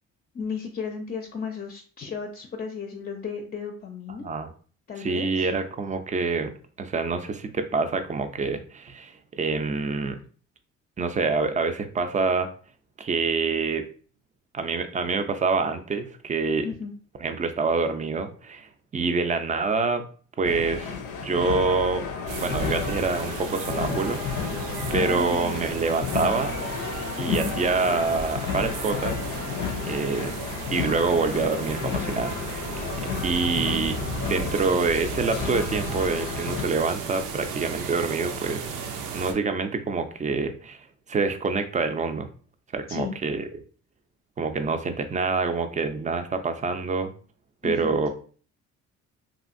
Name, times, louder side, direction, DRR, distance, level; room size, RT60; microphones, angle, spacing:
voice 1, 0.3-4.3 4.9-5.5 16.6-16.9 25.0-25.6 27.2-27.6 42.9-43.1 47.6-47.9, left 5 dB, 30° left, 3 dB, 0.5 m, -34 dB
voice 2, 5.0-6.5 6.8-10.2 11.0-12.5 13.0-13.8 14.5-16.7 17.2-20.0 20.4-20.9 21.2-22.1 22.4-24.6 24.9-26.6 27.2-29.2 29.8-30.4 30.7-32.7 33.2-34.0 34.3-40.8 41.1-42.3 42.7-43.5 44.4-47.1 47.6-48.1, right 4 dB, 25° right, 8 dB, 0.4 m, -26 dB
sound 1, 20.4-36.6, left 6 dB, 85° left, 0.5 m, -32 dB
sound 2, 22.3-39.3, right 5 dB, 85° right, 0.6 m, -35 dB
2.8 x 2.5 x 2.5 m, 0.42 s
cardioid pair, 80°, 31 cm